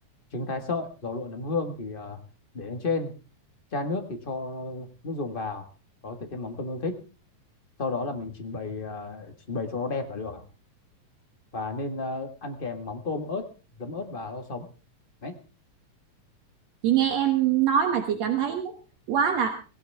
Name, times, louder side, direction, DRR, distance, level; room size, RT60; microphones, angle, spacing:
voice 1, 0.3-2.2 2.5-3.1 3.7-5.6 6.0-7.0 7.8-10.4 11.5-13.4 13.8-14.7 15.2-15.3, left 3 dB, 25° left, 6 dB, 1.3 m, -32 dB
voice 2, 16.8-18.7 19.1-19.5, right 9 dB, 65° right, 6 dB, 2.4 m, -23 dB
17.5 x 17.5 x 3.5 m, 0.34 s
omnidirectional pair, 3.3 m